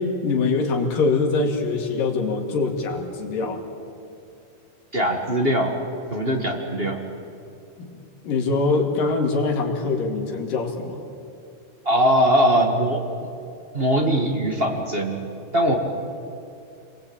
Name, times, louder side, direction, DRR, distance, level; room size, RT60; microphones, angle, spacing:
voice 1, 0.0-3.6 7.8-11.0, left 3 dB, 80° left, 2 dB, 4.1 m, -23 dB
voice 2, 4.9-5.8 6.1-7.0 11.8-13.0 13.7-15.3 15.5-15.7, right 1 dB, 25° right, 2 dB, 1.6 m, -21 dB
27.5 x 21.5 x 8.8 m, 2.6 s
omnidirectional pair, 3.8 m